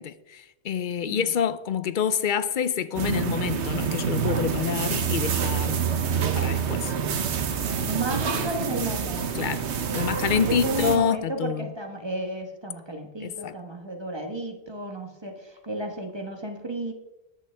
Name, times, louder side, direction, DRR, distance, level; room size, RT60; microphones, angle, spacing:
voice 1, 0.0-5.8 6.3-6.9 9.4-9.7 9.9-11.7 13.2-13.6, left 7 dB, 55° left, 0.6 m, -27 dB
sound 1, 2.9-11.0, right 7 dB, 80° right, 1.2 m, -27 dB
voice 2, 7.8-9.3 10.3-16.9, right 1 dB, 25° right, 1.2 m, -33 dB
14.0 x 10.5 x 3.4 m
omnidirectional pair, 1.1 m